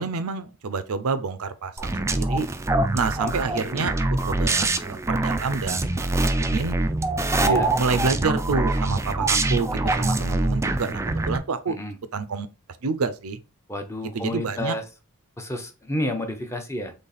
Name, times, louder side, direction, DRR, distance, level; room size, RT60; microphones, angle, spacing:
voice 1, 0.0-2.5 2.9-3.9 4.2-6.1 6.4-6.8 7.5-11.8 12.1-12.5 12.8-13.4 14.1-14.8, right 4 dB, 75° right, 0.5 m, -28 dB
sound 1, 1.8-11.4, right 2 dB, 15° right, 0.3 m, -24 dB
voice 2, 7.4-7.7 11.7-12.0 13.7-14.8 15.4-16.9, left 1 dB, 15° left, 0.7 m, -30 dB
4.0 x 3.3 x 4.0 m
head